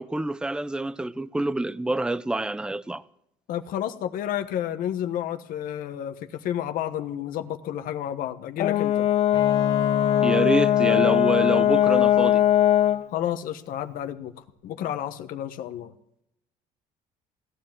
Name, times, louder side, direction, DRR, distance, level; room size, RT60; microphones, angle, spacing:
voice 1, 0.0-3.0 10.2-12.4, right 2 dB, 5° right, 0.6 m, -26 dB
voice 2, 3.5-6.1 6.4-9.1 13.1-14.3 14.6-15.9, left 11 dB, 70° left, 1.3 m, -30 dB
Brass instrument, 8.6-13.1, left 11 dB, 50° left, 0.5 m, -20 dB
Bowed string instrument, 9.3-12.9, left 6 dB, 30° left, 1.3 m, -33 dB
17.0 x 10.5 x 7.5 m
cardioid pair, 100°, 15 cm